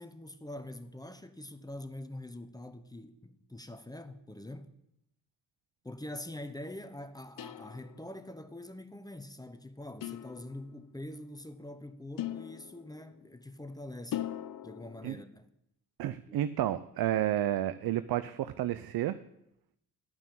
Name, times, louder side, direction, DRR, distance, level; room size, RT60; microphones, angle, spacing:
voice 1, 0.0-4.7 5.8-14.3 14.6-15.5 16.3-16.4, left 1 dB, 10° left, 0.9 m, -44 dB
sound 1, 7.4-8.2 10.0-10.9 12.2-13.2 14.1-15.1, left 12 dB, 55° left, 0.7 m, -40 dB
voice 2, 16.0-19.2, right 12 dB, 65° right, 0.6 m, -31 dB
12.5 x 5.6 x 7.5 m
supercardioid pair, 60°, 39 cm